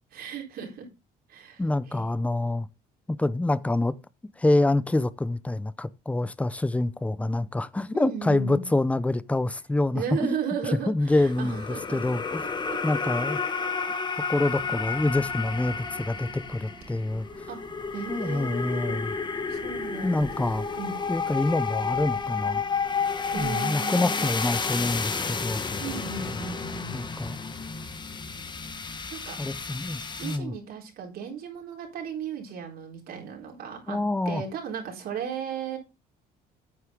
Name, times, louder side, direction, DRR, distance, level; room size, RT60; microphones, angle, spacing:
voice 1, 0.1-0.9 1.3-2.1 7.9-8.7 9.9-12.0 12.7-12.8 17.5-17.6 17.9-19.0 19.5-20.4 20.8-21.0 23.3-24.3 25.8-27.0 29.1-29.4 30.2-34.0 34.3-35.8, right 6 dB, 65° right, 4.2 m, -35 dB
voice 2, 1.6-2.7 3.1-3.9 4.4-10.4 10.9-12.4 12.8-13.4 14.3-17.3 18.1-19.1 20.0-20.6 21.1-22.6 23.3-25.6 26.9-27.4 29.4-30.5 33.9-34.4, left 2 dB, 10° left, 0.6 m, -26 dB
sound 1, 11.1-30.4, left 5 dB, 25° left, 1.2 m, -31 dB
sound 2, 14.4-23.5, right 4 dB, 30° right, 1.7 m, -49 dB
9.5 x 8.1 x 3.7 m
cardioid pair, 110°, 17 cm